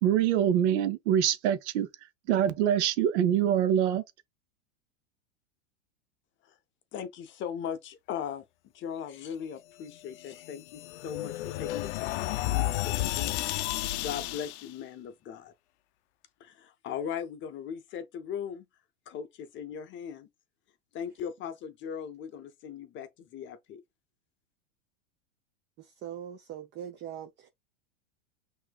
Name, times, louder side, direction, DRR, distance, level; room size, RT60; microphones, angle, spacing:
voice 1, 0.0-1.9 2.3-4.0, right 10 dB, 65° right, 1.0 m, -24 dB
voice 2, 6.9-8.4 8.7-13.5 14.0-15.5 16.4-18.6 19.1-20.3 20.9-23.8, left 8 dB, 30° left, 0.7 m, -39 dB
sound 1, 10.2-14.7, left 15 dB, 65° left, 0.5 m, -32 dB
voice 3, 25.8-27.5, right 10 dB, 30° right, 0.5 m, -41 dB
5.9 x 2.8 x 2.4 m
hypercardioid pair, 115°, 38 cm